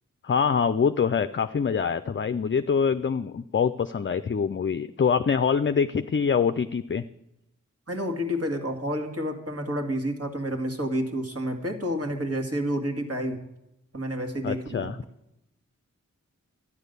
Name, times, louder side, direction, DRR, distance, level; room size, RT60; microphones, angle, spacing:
voice 1, 0.2-7.0 14.4-15.0, left 6 dB, 40° left, 10 dB, 0.5 m, -25 dB
voice 2, 7.9-13.4 13.9-14.9, equal, 50° right, 4 dB, 2.3 m, -29 dB
12.5 x 9.9 x 6.8 m, 0.85 s
wide cardioid pair, 60°, 32 cm